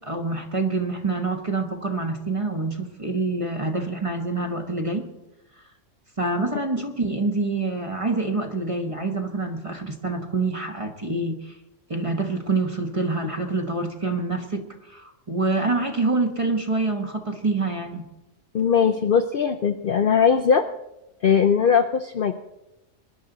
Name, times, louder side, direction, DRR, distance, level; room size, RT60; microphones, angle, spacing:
voice 1, 0.0-5.1 6.2-11.5 11.9-18.1, right 3 dB, 25° right, 4 dB, 1.2 m, -26 dB
voice 2, 18.5-20.7 21.2-22.3, left 7 dB, 55° left, 6 dB, 0.7 m, -20 dB
21.5 x 10.5 x 3.9 m, 0.91 s
omnidirectional pair, 1.4 m